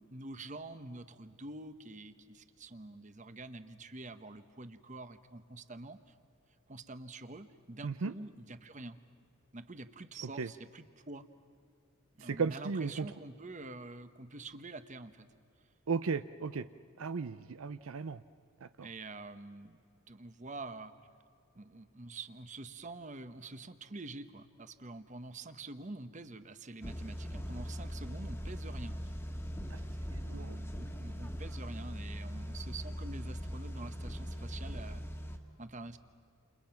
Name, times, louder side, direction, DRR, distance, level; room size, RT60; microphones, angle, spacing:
voice 1, 0.0-6.1 6.7-9.0 9.5-11.3 12.2-15.3 18.8-19.8 20.1-20.9 21.5-29.2 30.3-35.0 35.6-36.0, right 2 dB, 35° right, 11 dB, 1.0 m, -47 dB
voice 2, 12.2-13.1 15.9-16.6 17.0-18.2 18.6-18.9 29.7-29.8 30.1-30.6, right 5 dB, 70° right, 12 dB, 0.6 m, -35 dB
sound 1, 26.8-35.4, equal, 10° left, 1.7 m, -40 dB
29.0 x 29.0 x 5.9 m, 2.4 s
head